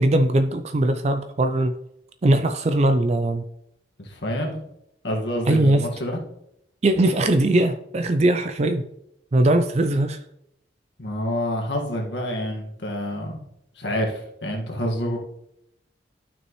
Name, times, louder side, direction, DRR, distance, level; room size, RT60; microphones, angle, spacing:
voice 1, 0.0-1.7 2.2-3.4 5.5-5.9 6.8-8.9 9.3-10.2, right 1 dB, 35° right, 8 dB, 0.4 m, -20 dB
voice 2, 4.0-4.6 5.0-6.2 11.0-13.4 13.8-15.2, equal, 70° left, 1 dB, 1.8 m, -27 dB
12.0 x 6.1 x 3.1 m, 0.79 s
head